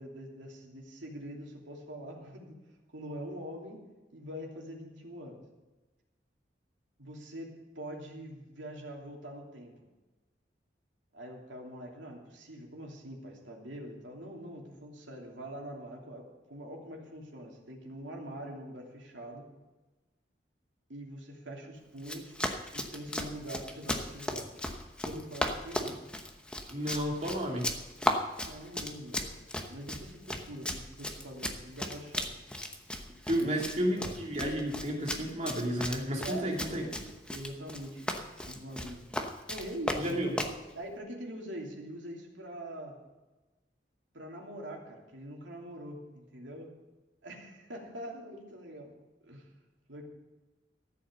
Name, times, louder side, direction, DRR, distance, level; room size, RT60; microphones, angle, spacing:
voice 1, 0.0-2.5 2.9-3.8 4.1-5.4 7.0-7.5 7.7-9.9 11.1-19.5 20.9-22.3 22.7-24.5 25.0-26.0 28.4-32.3 33.4-34.1 36.2-37.0 37.3-39.1 39.5-40.4 40.7-43.0 44.1-46.7 47.2-48.9 49.2-49.5 49.9-50.0, right 1 dB, 90° right, 0 dB, 3.0 m, -44 dB
Run, 22.0-40.6, left 1 dB, 5° left, 0.9 m, -36 dB
voice 2, 26.7-27.7 33.3-36.9 40.0-40.3, equal, 35° right, 0 dB, 2.9 m, -32 dB
14.0 x 8.1 x 6.8 m, 1.1 s
head